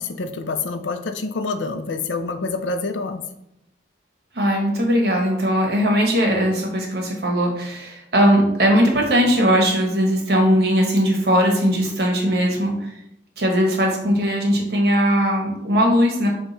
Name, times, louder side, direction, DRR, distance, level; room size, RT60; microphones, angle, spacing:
voice 1, 0.0-3.2, left 3 dB, 85° left, 8 dB, 0.5 m, -27 dB
voice 2, 4.3-12.9 13.4-16.3, equal, 60° right, 1 dB, 1.1 m, -19 dB
5.4 x 2.3 x 4.0 m, 0.80 s
head